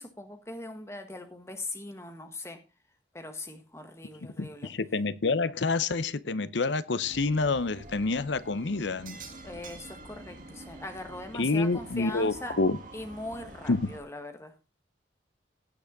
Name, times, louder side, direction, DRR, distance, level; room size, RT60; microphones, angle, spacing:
voice 1, 0.0-2.6 3.1-4.7 9.4-12.5 12.9-14.5, left 2 dB, 15° left, 1.6 m, -41 dB
voice 2, 4.4-9.2 11.3-12.8 13.7-13.9, left 3 dB, 85° left, 0.8 m, -28 dB
sound 1, 7.0-14.0, right 2 dB, 45° right, 2.0 m, -46 dB
17.0 x 5.9 x 4.0 m
head